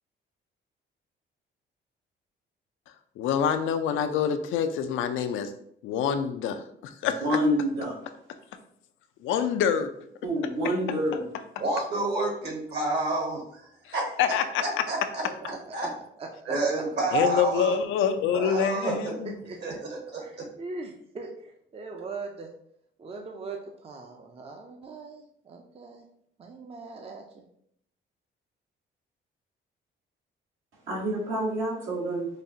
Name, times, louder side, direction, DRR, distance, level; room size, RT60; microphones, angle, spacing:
voice 1, 3.2-5.5 5.8-7.4 9.2-9.9 14.2-14.6 17.1-19.4, left 8 dB, 80° left, 8 dB, 0.4 m, -26 dB
voice 2, 7.2-8.0 10.2-11.3 30.9-32.3, equal, 80° right, -4 dB, 1.5 m, -27 dB
voice 3, 11.6-13.4 13.9-14.1 14.6-15.2 15.7-15.9 16.5-17.8 18.3-19.2 19.6-20.5, right 2 dB, 60° right, -1 dB, 1.4 m, -29 dB
voice 4, 15.2-15.9 16.2-16.8 18.8-19.0 19.2-19.8 20.2-22.5 23.0-26.0 26.4-27.4, right 4 dB, 30° right, 2 dB, 0.5 m, -40 dB
5.1 x 2.3 x 2.7 m, 0.69 s
cardioid pair, 90°, 20 cm